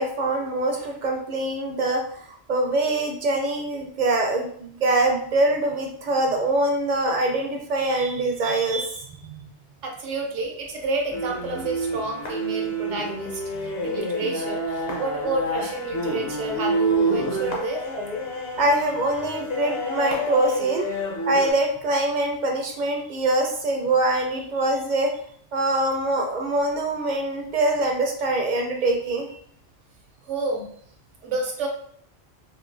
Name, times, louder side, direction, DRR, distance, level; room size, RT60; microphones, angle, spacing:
voice 1, 0.0-2.0 2.3-9.1 9.4-9.5 18.6-20.9 21.3-25.1 25.5-29.4, right 2 dB, 55° right, 2 dB, 0.5 m, -24 dB
voice 2, 9.8-17.9 30.2-30.7 31.2-31.7, right 3 dB, 90° right, 2 dB, 1.0 m, -30 dB
sound 1, 11.1-21.5, right 1 dB, 40° left, 0.7 m, -28 dB
3.8 x 2.5 x 2.5 m, 0.62 s
omnidirectional pair, 1.2 m